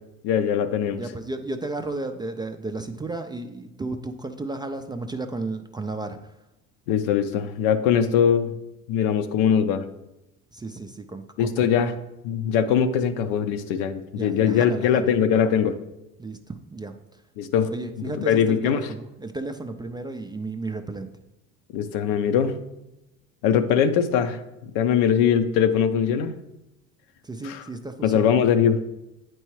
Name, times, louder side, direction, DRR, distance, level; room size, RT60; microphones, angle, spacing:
voice 1, 0.2-1.0 6.9-8.6 8.9-9.8 11.4-11.9 12.2-15.7 17.4-17.7 18.0-18.9 21.7-22.6 23.4-26.3 27.4-27.6 28.0-28.8, left 8 dB, 65° left, 10 dB, 0.7 m, -21 dB
voice 2, 1.0-6.3 10.5-11.7 14.1-15.1 16.2-16.9 17.6-21.1 27.2-28.4, right 2 dB, 10° right, 6 dB, 0.3 m, -33 dB
8.7 x 4.6 x 3.1 m, 0.92 s
hypercardioid pair, 70°, 38 cm